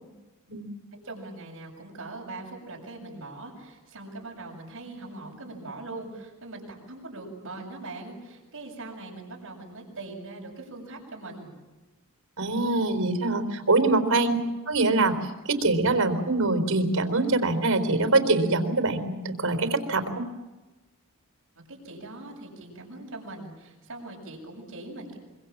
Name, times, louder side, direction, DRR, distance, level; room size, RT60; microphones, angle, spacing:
voice 1, 1.0-11.5 14.2-14.4 21.6-25.2, right 2 dB, 70° right, 0 dB, 7.4 m, -41 dB
voice 2, 12.4-14.4 14.7-15.1 15.5-20.3, right 2 dB, 85° right, 8 dB, 4.0 m, -24 dB
25.5 x 24.0 x 7.4 m, 1.1 s
head